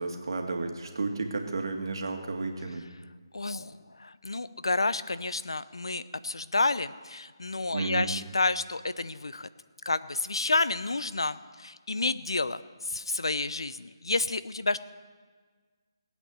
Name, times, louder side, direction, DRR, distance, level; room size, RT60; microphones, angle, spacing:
voice 1, 0.0-2.8 7.7-8.1, right 3 dB, 65° right, 3 dB, 2.1 m, -32 dB
voice 2, 3.3-9.5 9.9-12.6 12.9-14.8, left 3 dB, 80° left, 15 dB, 0.7 m, -30 dB
19.0 x 8.5 x 6.5 m, 1.5 s
figure-of-eight pair, 155°, 3 cm